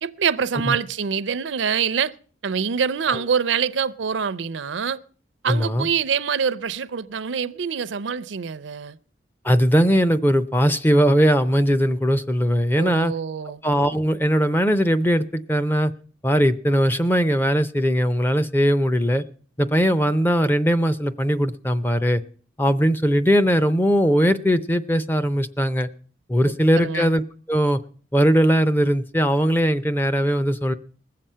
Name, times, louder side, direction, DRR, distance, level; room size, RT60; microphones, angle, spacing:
voice 1, 0.0-2.1 2.4-5.0 5.4-9.0 12.8-13.6 26.4-27.1, right 6 dB, 85° right, 0.5 m, -25 dB
voice 2, 5.5-5.9 9.4-13.1 13.6-15.9 16.2-19.2 19.6-22.2 22.6-25.9 26.3-27.2 27.5-27.8 28.1-30.7, equal, 10° left, 0.5 m, -20 dB
20.0 x 7.6 x 5.5 m
head